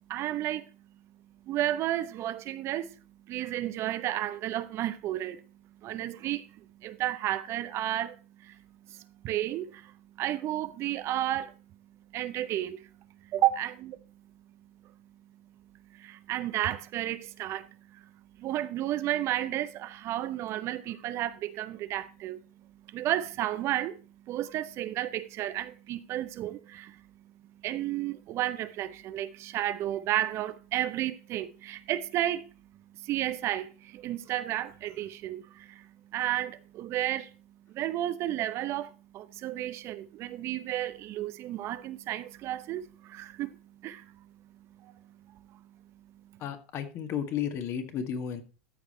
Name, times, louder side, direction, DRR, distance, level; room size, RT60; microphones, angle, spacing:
voice 1, 0.1-0.7 1.4-3.0 3.3-5.5 5.8-11.6 12.1-14.1 14.8-14.9 15.8-27.1 27.4-37.4 37.7-46.4, right 13 dB, 40° right, 0.7 m, -33 dB
voice 2, 46.4-48.4, left 8 dB, 45° left, 1.9 m, -33 dB
13.5 x 4.9 x 4.4 m
hypercardioid pair, 100°, 7 cm